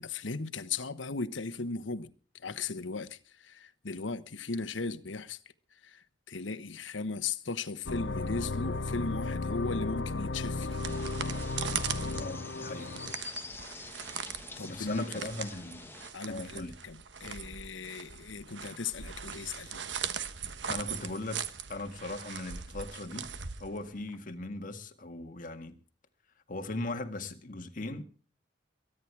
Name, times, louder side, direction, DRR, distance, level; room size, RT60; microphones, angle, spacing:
voice 1, 0.0-5.4 5.7-10.9 14.6-15.3 16.1-19.8, left 4 dB, 85° left, 1.1 m, -37 dB
sound 1, 7.9-13.1, left 3 dB, 65° left, 1.0 m, -34 dB
sound 2, 10.4-24.2, right 7 dB, 70° right, 1.2 m, -40 dB
sound 3, 10.8-16.1, left 3 dB, 10° left, 1.4 m, -47 dB
voice 2, 12.2-12.9 14.6-15.9 16.3-16.8 20.7-21.4 21.7-23.3 23.6-25.8 26.5-28.0, left 2 dB, 45° left, 1.8 m, -38 dB
23.0 x 10.0 x 4.7 m
head